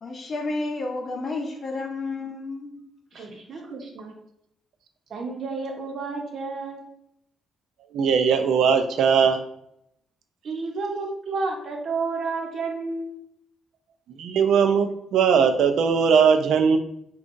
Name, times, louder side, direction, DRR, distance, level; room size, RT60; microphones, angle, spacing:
voice 1, 0.0-2.8 3.1-3.3 3.5-3.6, left 3 dB, 45° left, 2 dB, 0.8 m, -31 dB
voice 2, 3.1-4.1 5.1-6.9 10.4-13.1, right 3 dB, 60° right, 1 dB, 0.8 m, -31 dB
voice 3, 7.9-9.4 14.2-16.8, right 6 dB, 80° right, 6 dB, 0.4 m, -19 dB
5.2 x 2.3 x 2.5 m, 0.74 s
cardioid pair, 95°, 0 cm